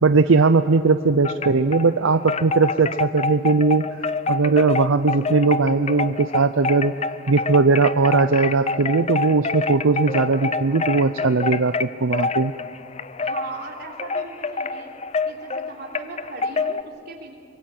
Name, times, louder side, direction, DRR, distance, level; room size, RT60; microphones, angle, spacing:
voice 1, 0.0-3.9 4.3-6.9 7.3-12.5, right 4 dB, 85° right, 10 dB, 0.6 m, -19 dB
Wind chime, 1.2-1.9 2.3-16.8, left 4 dB, 30° left, 0.5 m, -27 dB
voice 2, 13.2-14.9 15.3-17.4, right 3 dB, 55° right, 0 dB, 3.4 m, -38 dB
24.5 x 22.5 x 7.8 m, 2.3 s
head